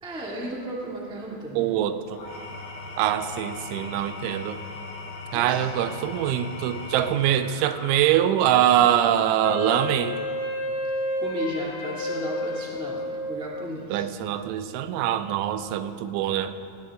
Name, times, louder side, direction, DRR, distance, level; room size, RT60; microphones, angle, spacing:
voice 1, 0.0-1.7 5.3-5.6 11.2-14.1, equal, 5° right, -4 dB, 0.4 m, -34 dB
voice 2, 1.6-2.2 3.0-4.6 5.3-10.2 13.9-16.5, right 11 dB, 90° right, 10 dB, 3.2 m, -23 dB
Engine / Tools, 2.1-8.5, left 3 dB, 60° left, 4.9 m, -39 dB
Wind instrument woodwind instrument, 9.4-13.7, left 1 dB, 80° left, 3.7 m, -30 dB
19.0 x 17.5 x 3.8 m, 2.4 s
omnidirectional pair, 5.4 m